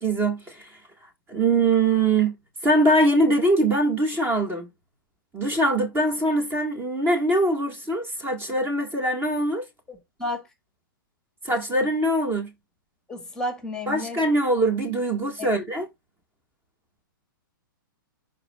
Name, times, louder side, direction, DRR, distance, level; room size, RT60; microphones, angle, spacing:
voice 1, 0.0-0.7 1.3-2.3 2.6-4.7 5.3-9.6 11.5-12.5 13.9-15.9, right 2 dB, 20° right, 1.8 m, -22 dB
voice 2, 9.9-10.4 13.1-14.2 15.4-15.6, left 1 dB, 5° left, 1.9 m, -32 dB
11.5 x 4.2 x 2.4 m
hypercardioid pair, 130°, 12 cm